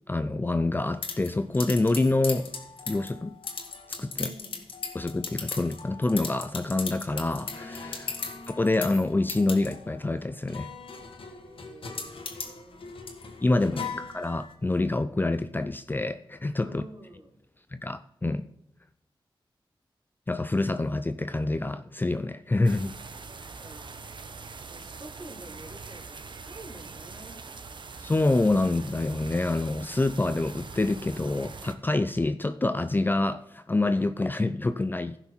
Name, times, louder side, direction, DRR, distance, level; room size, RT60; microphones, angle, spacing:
voice 1, 0.1-2.5 2.9-3.4 3.9-4.3 4.9-10.7 13.4-16.8 17.7-18.5 20.3-23.0 28.0-35.2, left 2 dB, 20° left, 11 dB, 0.5 m, -27 dB
sound 1, 1.0-14.5, left 4 dB, 85° left, 1.5 m, -38 dB
voice 2, 4.1-4.6 11.4-12.8 16.6-17.3 23.3-24.1 24.7-27.4, right 1 dB, 45° right, -2 dB, 3.7 m, -49 dB
sound 2, 22.6-31.7, right 4 dB, 60° right, 0.9 m, -43 dB
15.0 x 6.0 x 4.4 m, 0.81 s
wide cardioid pair, 95°, 9 cm